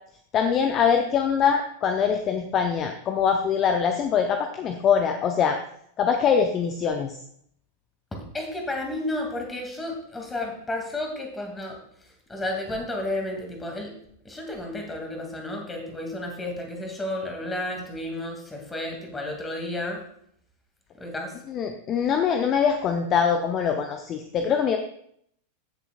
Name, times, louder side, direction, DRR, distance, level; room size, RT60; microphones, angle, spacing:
voice 1, 0.3-5.6 6.0-7.2 21.5-24.8, left 7 dB, 30° left, 6 dB, 0.7 m, -23 dB
voice 2, 8.1-11.8 12.3-13.9 14.2-20.0 21.0-21.3, left 1 dB, 10° left, 2 dB, 2.3 m, -32 dB
15.0 x 7.0 x 2.4 m, 0.68 s
figure-of-eight pair, 90°, 0 cm